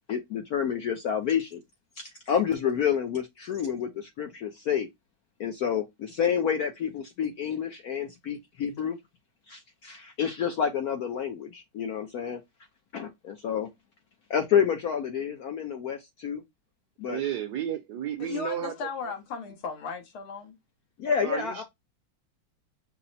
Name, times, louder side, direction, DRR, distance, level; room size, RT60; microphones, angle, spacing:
voice 1, 0.1-1.6 2.0-4.9 5.4-9.0 9.5-12.4 12.9-13.7 14.3-16.4 17.0-17.2 21.0-21.6, left 8 dB, 70° left, 0.9 m, -29 dB
voice 2, 17.0-18.7 21.2-21.6, right 9 dB, 65° right, 1.1 m, -32 dB
voice 3, 18.2-20.6, left 5 dB, 85° left, 2.1 m, -36 dB
5.5 x 2.1 x 4.0 m
omnidirectional pair, 2.3 m